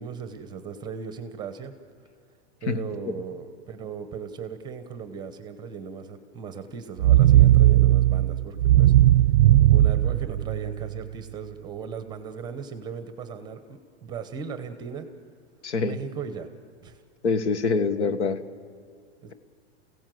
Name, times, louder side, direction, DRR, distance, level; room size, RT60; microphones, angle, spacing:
voice 1, 0.0-1.7 2.6-8.9 9.7-15.1 15.8-16.5 16.8-17.0 19.2-19.3, right 6 dB, 10° right, 9 dB, 0.9 m, -37 dB
sound 1, 7.0-11.0, right 13 dB, 50° right, 0.5 m, -17 dB
voice 2, 15.6-16.0 17.2-18.4, left 4 dB, 75° left, 10 dB, 1.6 m, -25 dB
29.5 x 16.5 x 7.7 m, 2.3 s
hypercardioid pair, 160°, 34 cm